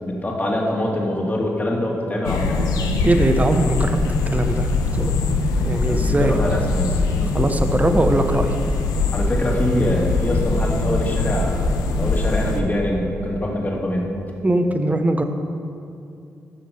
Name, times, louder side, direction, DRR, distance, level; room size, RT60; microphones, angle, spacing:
voice 1, 0.0-2.7 5.5-7.0 9.1-14.1, left 1 dB, 25° left, -1 dB, 2.5 m, -24 dB
sound 1, 2.2-12.6, left 3 dB, 80° left, 0.9 m, -22 dB
voice 2, 3.0-4.0 4.3-4.7 4.9-5.2 5.6-6.3 7.3-8.5 14.4-15.2, right 2 dB, 25° right, 6 dB, 1.0 m, -20 dB
14.5 x 5.9 x 5.5 m, 2.5 s
supercardioid pair, 45°, 6 cm